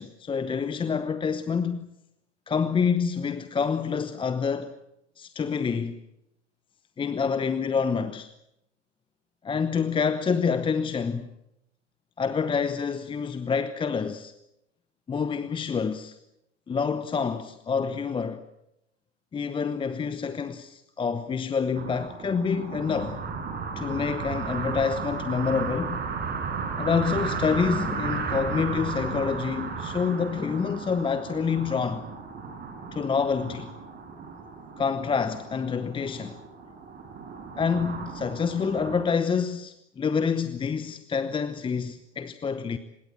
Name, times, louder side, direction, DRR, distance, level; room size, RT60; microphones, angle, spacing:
voice 1, 0.0-1.9 2.5-4.7 5.2-6.0 7.0-8.3 9.4-11.3 12.2-14.3 15.1-16.2 16.7-18.4 19.3-23.2 23.8-26.0 26.8-32.1 32.9-33.7 34.8-36.4 37.6-42.8, left 6 dB, 15° left, 0.9 m, -27 dB
sound 1, 21.7-39.0, right 5 dB, 25° right, 5.5 m, -34 dB
25.0 x 21.0 x 7.6 m
hypercardioid pair, 100°, 36 cm